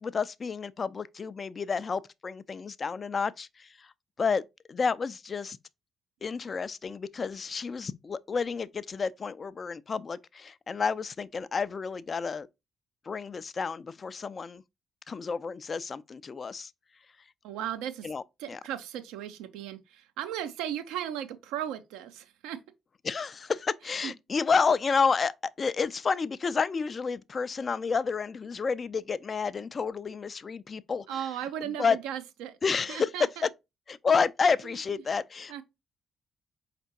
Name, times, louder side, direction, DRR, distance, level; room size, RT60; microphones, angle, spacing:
voice 1, 0.0-3.9 4.2-4.4 4.7-5.6 6.2-12.5 13.1-14.6 15.1-16.7 18.0-18.6 23.0-31.2 31.8-32.0 32.6-33.1 33.9-35.6, left 5 dB, 40° left, 0.3 m, -30 dB
voice 2, 17.4-18.1 18.4-22.6 24.0-24.1 31.1-32.6 32.9-33.5 34.6-34.8 35.5-35.6, right 10 dB, 70° right, 0.5 m, -36 dB
4.9 x 3.3 x 2.8 m
figure-of-eight pair, 40°, 0 cm